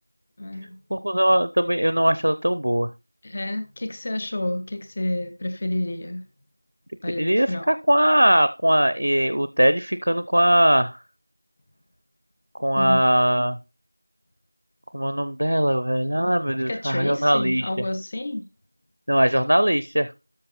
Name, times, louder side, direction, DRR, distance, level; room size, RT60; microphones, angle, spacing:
voice 1, 0.4-0.8 3.2-6.2 7.0-7.7 12.8-13.0 16.7-18.4, left 1 dB, 10° left, 7 dB, 0.4 m, -29 dB
voice 2, 0.9-2.9 7.2-11.0 12.6-13.6 14.9-17.7 19.1-20.1, equal, 35° right, 13 dB, 0.6 m, -20 dB
13.0 x 5.7 x 4.2 m, 0.29 s
figure-of-eight pair, 180°, 0 cm